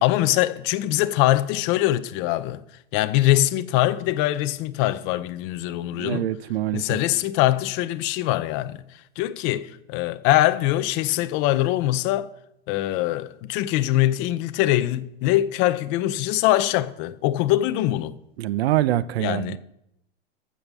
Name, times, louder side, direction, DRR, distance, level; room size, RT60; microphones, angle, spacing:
voice 1, 0.0-2.6 2.9-6.3 6.7-8.8 9.2-12.3 12.7-18.1 19.2-19.6, left 15 dB, 40° left, 0.6 m, -23 dB
voice 2, 5.9-7.0 18.4-19.6, right 13 dB, 80° right, 0.8 m, -25 dB
14.5 x 5.3 x 7.3 m
supercardioid pair, 145°, 31 cm